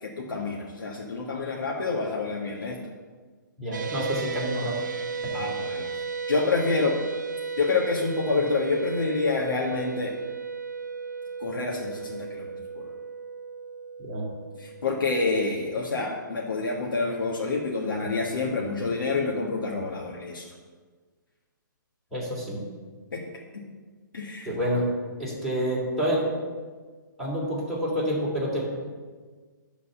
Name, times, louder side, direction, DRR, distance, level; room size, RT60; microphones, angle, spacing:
voice 1, 0.0-2.8 5.3-5.9 6.3-7.0 7.6-10.2 11.4-12.5 12.8-12.9 14.5-20.4 23.1-23.2 24.1-24.5, left 3 dB, 90° left, -3 dB, 1.5 m, -28 dB
voice 2, 3.6-4.7 14.0-14.3 22.1-22.6 24.4-24.9 25.2-26.3 27.2-28.7, equal, ahead, -8 dB, 3.1 m, -28 dB
sound 1, 3.7-16.1, right 5 dB, 65° right, 1.1 m, -35 dB
11.5 x 4.1 x 6.8 m, 1.5 s
hypercardioid pair, 160°, 11 cm